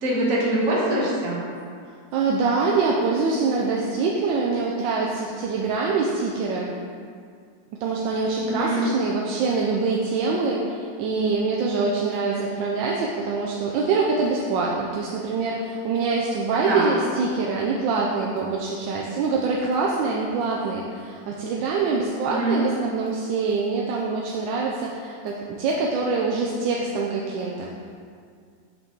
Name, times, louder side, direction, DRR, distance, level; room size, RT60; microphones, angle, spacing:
voice 1, 0.0-1.4 8.4-8.9 16.5-16.9 22.2-22.6, right 1 dB, 50° right, -6 dB, 1.5 m, -24 dB
voice 2, 2.1-6.7 7.8-27.7, right 4 dB, 90° right, -2 dB, 1.3 m, -24 dB
5.8 x 5.5 x 3.8 m, 2.2 s
omnidirectional pair, 2.0 m